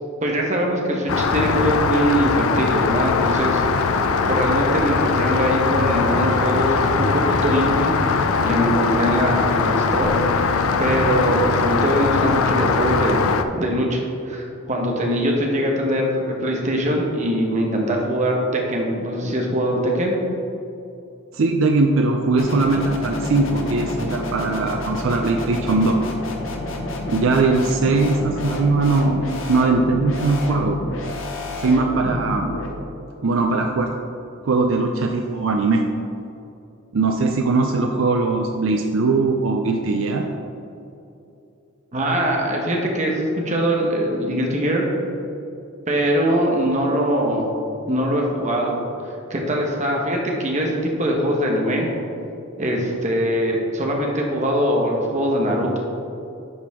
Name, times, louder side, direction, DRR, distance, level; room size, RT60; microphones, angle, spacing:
voice 1, 0.2-3.9 4.3-10.1 10.4-10.5 10.8-13.2 13.5-20.2 41.9-44.9 45.9-47.4 47.9-48.8 49.3-51.9 52.6-55.8, equal, 35° right, 0 dB, 1.2 m, -22 dB
Rain, 1.1-13.4, left 5 dB, 90° left, 0.5 m, -21 dB
voice 2, 21.3-26.0 27.1-30.8 31.6-32.6 33.2-34.0 34.4-35.8 36.9-40.3, right 3 dB, 70° right, 4 dB, 0.5 m, -20 dB
sound 1, 22.4-32.7, left 1 dB, 70° left, 1.0 m, -29 dB
10.5 x 5.0 x 3.6 m, 2.7 s
head